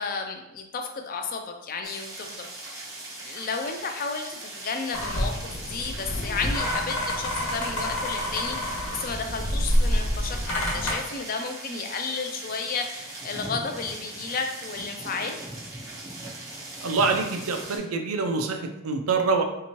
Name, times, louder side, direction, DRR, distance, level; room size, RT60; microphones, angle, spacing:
voice 1, 0.0-2.9 3.2-15.4, left 4 dB, 40° left, 5 dB, 0.3 m, -33 dB
sound 1, 1.8-17.8, right 2 dB, 15° right, 0.6 m, -40 dB
sound 2, 4.9-10.9, equal, 85° left, 1.1 m, -28 dB
voice 2, 16.8-19.4, right 4 dB, 75° right, 4 dB, 0.4 m, -25 dB
3.4 x 2.9 x 2.9 m, 0.91 s
head